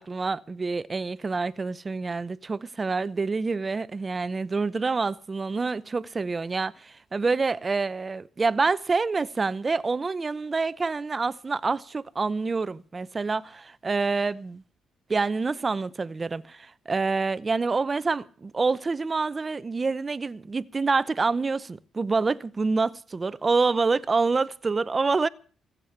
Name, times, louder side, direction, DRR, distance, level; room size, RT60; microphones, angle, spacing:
voice 1, 0.0-14.6 15.1-25.3, right 4 dB, 30° right, 0.7 m, -27 dB
20.5 x 8.3 x 7.0 m
cardioid pair, 90°, 0 cm